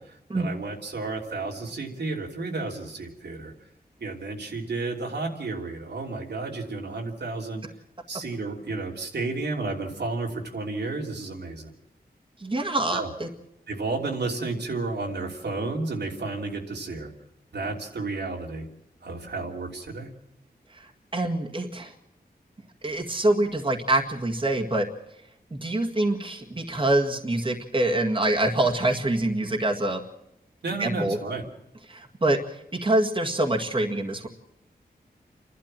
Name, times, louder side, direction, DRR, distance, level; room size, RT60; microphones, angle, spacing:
voice 1, 0.0-3.5 4.0-7.6 8.1-11.7 12.9-13.1 13.7-17.1 17.5-18.7 19.0-20.1 30.6-31.4, right 3 dB, 90° right, 0 dB, 3.1 m, -32 dB
voice 2, 12.4-13.3 20.7-21.9 22.8-24.9 25.5-30.0 30.8-31.2 31.9-32.4 32.8-34.3, right 1 dB, 30° right, 2 dB, 1.9 m, -25 dB
29.0 x 12.0 x 7.5 m, 0.85 s
wide cardioid pair, 90°, 17 cm